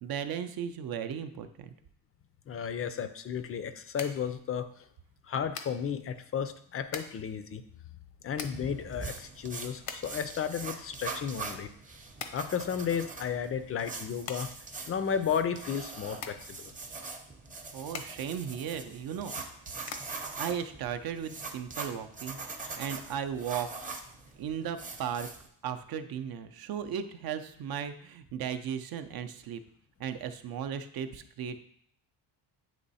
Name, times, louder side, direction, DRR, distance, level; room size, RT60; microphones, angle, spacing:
voice 1, 0.0-1.7 17.7-19.3 20.4-23.7 24.4-25.3 25.6-29.6 30.0-31.6, right 8 dB, 55° right, 9 dB, 0.6 m, -36 dB
voice 2, 2.5-4.7 5.3-7.6 8.2-11.7 12.3-14.5 14.9-16.7 22.6-22.8, left 7 dB, 35° left, 11 dB, 0.4 m, -33 dB
sound 1, 2.7-21.5, left 6 dB, 75° left, 0.8 m, -47 dB
sound 2, 8.3-25.5, right 4 dB, 20° right, 0.7 m, -43 dB
8.7 x 3.1 x 4.1 m, 0.64 s
cardioid pair, 135°, 43 cm